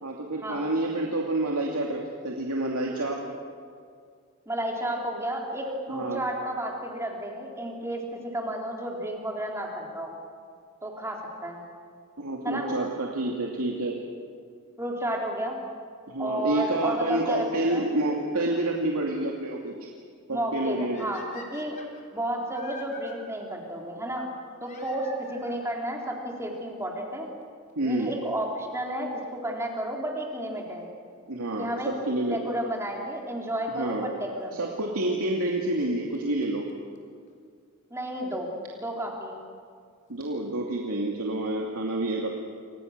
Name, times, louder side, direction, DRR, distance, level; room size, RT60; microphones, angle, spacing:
voice 1, 0.0-3.2 5.9-6.2 12.2-14.0 16.1-19.7 20.3-21.1 27.8-28.1 31.3-32.4 33.7-34.1 34.5-36.7 40.1-42.3, right 1 dB, 90° right, -1 dB, 2.6 m, -28 dB
voice 2, 4.5-10.2 10.8-11.6 12.4-12.7 14.8-15.6 16.2-17.8 20.3-21.8 22.1-24.3 24.6-27.3 27.8-30.9 31.6-31.9 32.3-34.6 37.9-38.5 38.8-39.4, right 1 dB, 15° right, 0 dB, 3.9 m, -32 dB
sound 1, 20.9-23.2 24.6-25.7 26.6-26.7 27.4-27.5 27.7-27.8 29.7-29.9 32.8-32.9 33.9-34.0 35.4-35.5 35.8-35.9 36.1-36.2 36.4-36.5 36.7-36.8 37.0-37.1 37.3-37.4, left 3 dB, 35° left, 3.6 m, -46 dB
29.0 x 26.0 x 6.7 m, 2.2 s
head